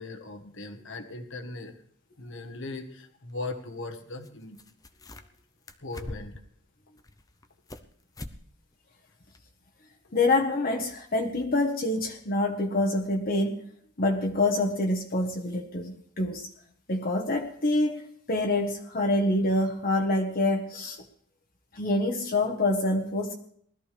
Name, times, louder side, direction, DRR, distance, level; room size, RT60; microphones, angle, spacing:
voice 1, 0.0-1.7 2.2-4.6 5.8-6.3, left 2 dB, 60° left, 7 dB, 1.5 m, -38 dB
sound 1, 4.2-4.3 4.5-5.4 5.7-6.5 7.0-7.9 8.1-8.4 8.7-8.8 9.3-9.4, left 1 dB, 15° left, 0.7 m, -42 dB
voice 2, 10.1-13.6 14.0-16.5 16.9-18.0 18.3-21.0 21.7-23.4, left 2 dB, 45° left, 2 dB, 1.4 m, -26 dB
20.0 x 13.5 x 3.4 m, 0.65 s
head